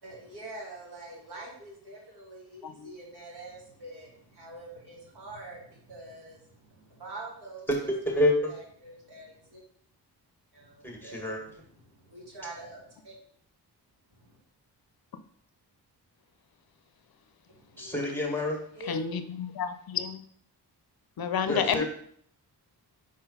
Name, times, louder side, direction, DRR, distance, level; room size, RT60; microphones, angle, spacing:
voice 1, 0.0-7.9 8.5-9.6 10.5-11.3 11.8-13.2 14.1-14.4 17.5-18.1 18.7-19.0, right 1 dB, 70° right, -3 dB, 2.4 m, -45 dB
voice 2, 7.7-8.6 10.8-11.4 17.8-18.6 21.5-21.8, left 1 dB, 5° left, 0 dB, 1.8 m, -28 dB
voice 3, 18.9-19.2 19.6-20.2 21.2-21.8, left 7 dB, 60° left, 10 dB, 0.6 m, -29 dB
5.1 x 3.8 x 5.5 m, 0.63 s
cardioid pair, 90°, 41 cm